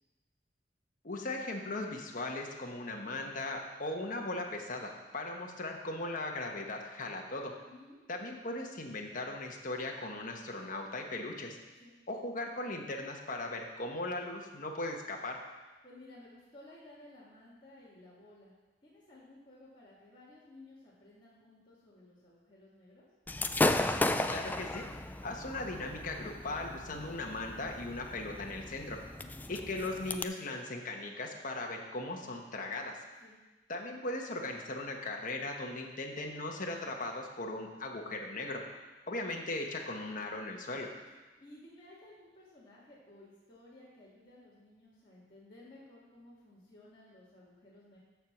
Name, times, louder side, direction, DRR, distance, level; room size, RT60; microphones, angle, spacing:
voice 1, 1.0-7.5 8.1-11.6 12.1-15.4 24.3-24.8 25.2-29.0 29.5-33.0 33.7-38.6 39.1-40.9, left 2 dB, 50° left, 1 dB, 1.2 m, -38 dB
voice 2, 7.6-8.0 11.8-11.9 15.8-18.5 18.8-23.1 29.0-29.4 33.2-33.4 41.4-48.0, left 1 dB, 30° left, -9 dB, 2.0 m, -56 dB
Gunshot gunfire / Fireworks, 23.3-30.2, left 2 dB, 10° left, 0.3 m, -35 dB
13.5 x 4.6 x 5.9 m, 1.2 s
head